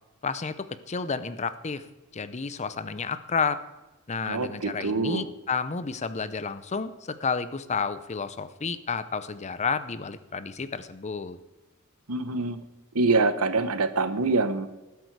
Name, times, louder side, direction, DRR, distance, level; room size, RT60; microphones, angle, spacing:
voice 1, 0.2-1.9 2.1-3.6 4.1-11.4, left 5 dB, 30° left, 13 dB, 0.6 m, -31 dB
voice 2, 4.3-5.3 12.1-12.6 12.9-14.7, right 3 dB, 85° right, 11 dB, 1.0 m, -25 dB
19.5 x 8.4 x 4.7 m, 1.1 s
head